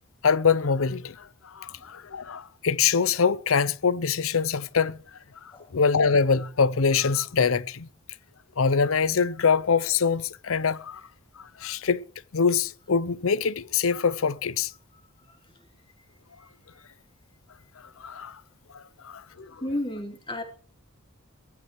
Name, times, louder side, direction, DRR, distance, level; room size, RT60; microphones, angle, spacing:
voice 1, 0.2-1.3 1.5-5.0 5.7-7.9 8.6-11.0 11.6-12.0 12.3-14.7 18.0-18.4 18.7-19.5, left 5 dB, 65° left, 0.7 m, -24 dB
voice 2, 19.6-20.4, left 1 dB, 25° left, 2.9 m, -33 dB
23.0 x 16.5 x 3.2 m
head